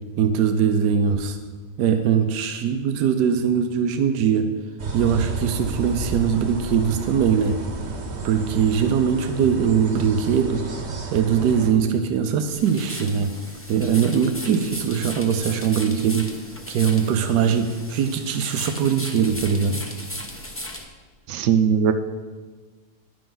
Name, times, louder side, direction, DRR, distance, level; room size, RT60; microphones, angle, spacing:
voice 1, 0.2-1.4 1.8-4.5 4.9-7.6 8.2-10.6 11.1-13.3 13.7-16.3 16.7-19.8, right 7 dB, 85° right, 7 dB, 1.3 m, -21 dB
sound 1, 4.8-11.7, right 3 dB, 45° right, 1.2 m, -31 dB
sound 2, 12.5-20.8, left 1 dB, 10° left, 0.6 m, -36 dB
voice 2, 21.3-21.9, right 7 dB, 70° right, 8 dB, 0.7 m, -19 dB
11.0 x 10.0 x 3.9 m, 1.4 s
omnidirectional pair, 1.7 m